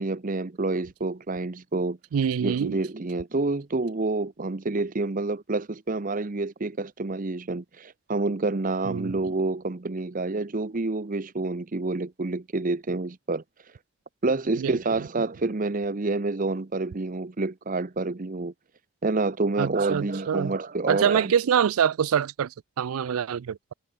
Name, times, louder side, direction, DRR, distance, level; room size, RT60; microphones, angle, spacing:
voice 1, 0.0-2.0 2.4-13.7 14.2-18.5 19.0-21.3, right 3 dB, 40° right, 0.7 m, -28 dB
voice 2, 2.1-2.8 8.8-9.2 14.6-15.1 19.6-20.5 20.9-23.7, right 8 dB, 75° right, 0.4 m, -25 dB
head